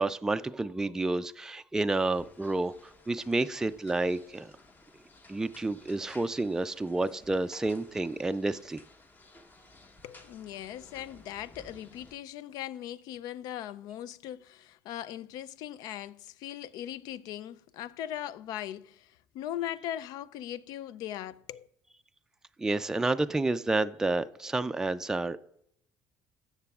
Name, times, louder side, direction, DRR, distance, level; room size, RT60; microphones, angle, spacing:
voice 1, 0.0-2.7 3.1-4.5 5.3-8.8 22.6-25.4, right 2 dB, 10° right, 0.3 m, -30 dB
sound 1, 2.1-12.2, left 2 dB, 25° left, 1.0 m, -56 dB
voice 2, 10.0-21.7, left 12 dB, 70° left, 0.4 m, -39 dB
16.5 x 6.7 x 2.4 m
cardioid pair, 110°, 7 cm